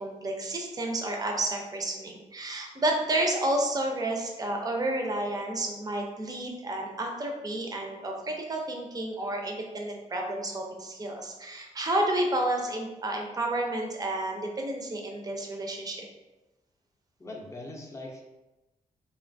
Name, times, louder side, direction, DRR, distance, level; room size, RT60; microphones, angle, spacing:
voice 1, 0.0-16.1, right 1 dB, 25° right, 1 dB, 0.5 m, -31 dB
voice 2, 17.2-18.2, left 2 dB, 20° left, -1 dB, 0.5 m, -41 dB
2.9 x 2.2 x 2.5 m, 1.0 s
cardioid pair, 95°, 15 cm